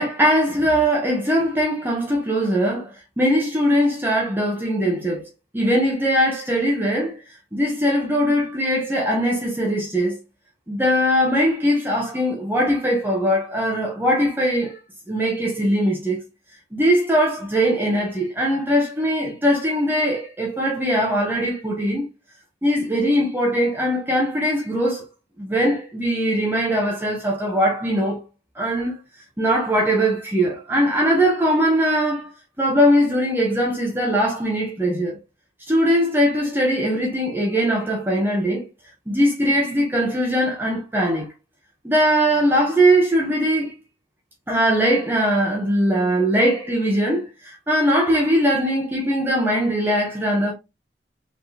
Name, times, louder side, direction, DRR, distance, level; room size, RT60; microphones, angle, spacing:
voice 1, 0.0-5.2 5.5-7.2 7.5-10.2 10.7-14.8 15.1-16.2 16.7-22.0 22.6-25.0 25.4-28.2 28.6-28.9 29.4-32.3 32.6-35.2 35.7-38.7 39.1-41.3 41.8-43.7 44.5-50.5, equal, 10° right, 1.0 m, -20 dB
4.3 x 3.5 x 2.9 m
head